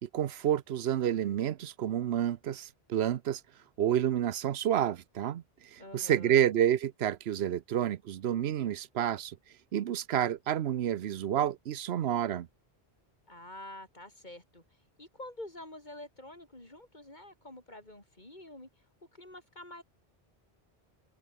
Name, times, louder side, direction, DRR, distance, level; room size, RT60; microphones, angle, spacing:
voice 1, 0.0-3.4 3.8-9.4 9.7-12.5, right 10 dB, 85° right, 1.0 m, -29 dB
voice 2, 5.8-6.4 13.3-14.6 15.0-18.7 19.1-19.8, left 1 dB, 45° left, 5.1 m, -47 dB
omnidirectional pair, 1.0 m